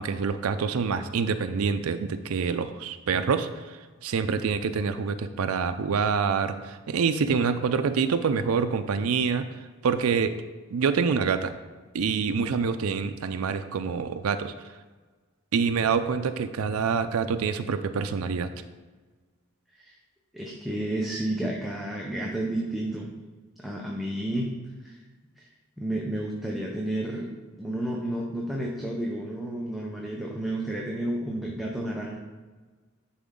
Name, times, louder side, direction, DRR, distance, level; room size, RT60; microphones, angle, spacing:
voice 1, 0.0-9.4 9.8-10.4 10.7-11.5 11.9-14.5 15.5-18.5, right 5 dB, 90° right, 9 dB, 0.4 m, -26 dB
voice 2, 20.3-23.1 23.6-24.5 24.8-25.0 25.4-25.5 25.8-27.3 27.6-32.2, right 1 dB, ahead, -3 dB, 0.7 m, -31 dB
10.5 x 4.2 x 3.7 m, 1.4 s
head